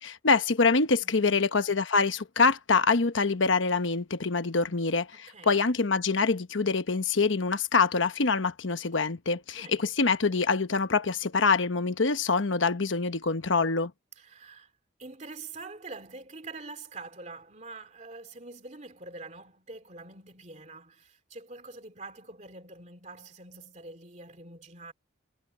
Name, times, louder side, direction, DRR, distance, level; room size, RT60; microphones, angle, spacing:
voice 1, 0.0-13.9, left 4 dB, 75° left, 1.1 m, -25 dB
voice 2, 1.0-1.4 4.5-4.8 5.1-5.6 9.6-9.9 14.2-14.7 15.0-24.9, right 3 dB, 35° right, 2.7 m, -45 dB
head